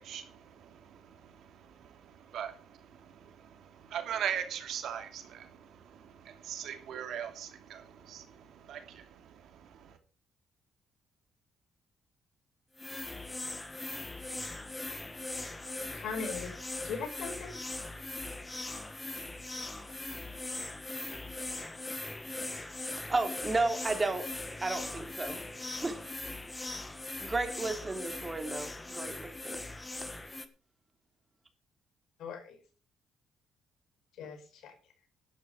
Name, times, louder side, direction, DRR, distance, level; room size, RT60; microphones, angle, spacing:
voice 1, 0.0-9.9, right 9 dB, 75° right, 2.7 m, -41 dB
sound 1, 12.8-30.5, left 2 dB, 15° left, 1.7 m, -40 dB
voice 2, 15.9-16.5 16.8-17.6 32.2-32.6 34.2-34.7, left 5 dB, 80° left, 4.8 m, -39 dB
voice 3, 22.9-24.3 24.6-25.4 25.8-26.1 26.7-26.9 27.2-29.6, right 3 dB, 25° right, 3.2 m, -33 dB
11.5 x 11.5 x 5.0 m
cardioid pair, 90°, 0 cm